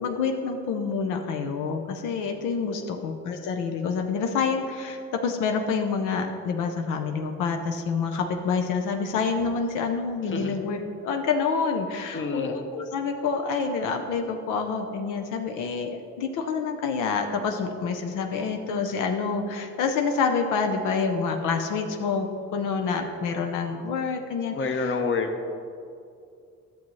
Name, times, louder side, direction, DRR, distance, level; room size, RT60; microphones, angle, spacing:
voice 1, 0.0-25.0, left 5 dB, 90° left, 4 dB, 0.7 m, -27 dB
voice 2, 12.1-12.5 24.5-25.5, left 4 dB, 40° left, 5 dB, 1.0 m, -28 dB
11.5 x 7.1 x 3.1 m, 2.4 s
cardioid pair, 90°, 30 cm